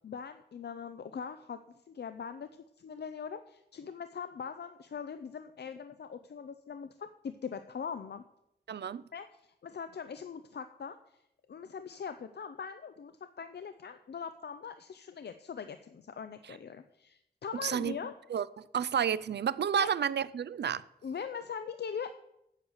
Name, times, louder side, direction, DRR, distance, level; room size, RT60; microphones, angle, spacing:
voice 1, 0.0-1.6 1.9-2.5 2.8-8.2 9.1-11.0 11.5-18.1 19.7-19.9 21.0-22.1, left 6 dB, 75° left, 0.5 m, -41 dB
voice 2, 8.7-9.0 17.6-17.9 18.3-20.8, right 8 dB, 85° right, 0.4 m, -31 dB
8.2 x 8.1 x 6.3 m
wide cardioid pair, 80°, 17 cm